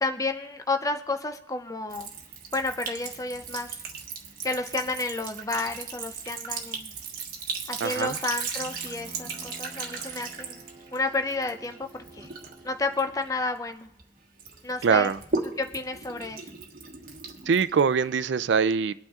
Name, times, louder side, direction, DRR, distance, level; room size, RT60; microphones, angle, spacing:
voice 1, 0.0-2.1 2.5-3.8 4.4-6.9 7.7-10.6 10.9-12.3 12.6-13.9 14.6-15.1 15.6-16.5, left 3 dB, 20° left, 6 dB, 0.5 m, -31 dB
Sink (filling or washing) / Trickle dribble, 1.9-14.0 14.4-18.3, right 4 dB, 55° right, 1.4 m, -37 dB
voice 2, 7.8-8.2 14.8-15.2 17.5-18.9, right 5 dB, 80° right, 14 dB, 0.4 m, -23 dB
Bowed string instrument, 8.6-13.4, right 1 dB, 25° right, 3.1 m, -50 dB
23.5 x 9.0 x 2.4 m, 0.85 s
head